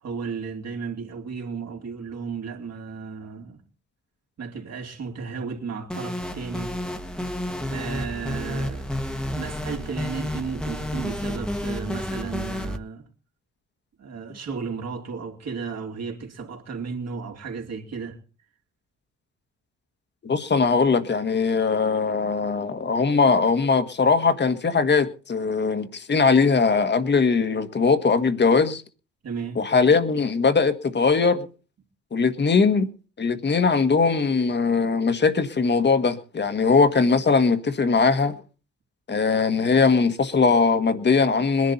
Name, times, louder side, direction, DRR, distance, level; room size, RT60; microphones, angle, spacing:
voice 1, 0.0-3.6 4.4-6.7 7.3-7.4 7.7-8.9 9.3-13.0 14.0-18.2 29.2-29.6, right 5 dB, 60° right, 3.5 m, -34 dB
sound 1, 5.9-12.8, left 1 dB, 5° left, 1.5 m, -30 dB
voice 2, 20.2-28.8 29.5-31.5 32.1-32.9 33.2-38.3 39.1-41.7, left 4 dB, 35° left, 1.6 m, -20 dB
21.5 x 11.0 x 4.2 m
cardioid pair, 90°, 30 cm